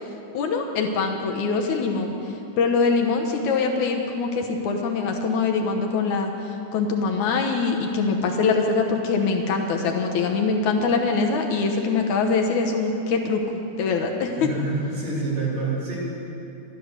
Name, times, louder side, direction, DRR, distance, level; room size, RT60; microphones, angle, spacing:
voice 1, 0.3-13.4 13.8-14.5, left 4 dB, 75° left, 3 dB, 2.4 m, -23 dB
voice 2, 14.3-16.0, right 3 dB, 55° right, -6 dB, 4.4 m, -27 dB
13.0 x 12.5 x 6.6 m, 2.8 s
omnidirectional pair, 3.5 m